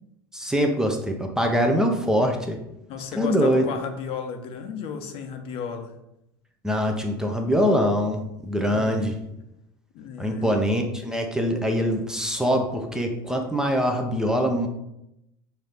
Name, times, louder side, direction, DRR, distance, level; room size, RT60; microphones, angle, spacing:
voice 1, 0.3-2.6 3.1-3.7 6.6-9.2 10.2-14.7, equal, 5° right, 2 dB, 0.6 m, -23 dB
voice 2, 2.9-5.9 8.7-9.0 9.9-10.5, left 6 dB, 50° left, 6 dB, 0.7 m, -34 dB
5.6 x 2.7 x 3.4 m, 0.84 s
supercardioid pair, 120°, 12 cm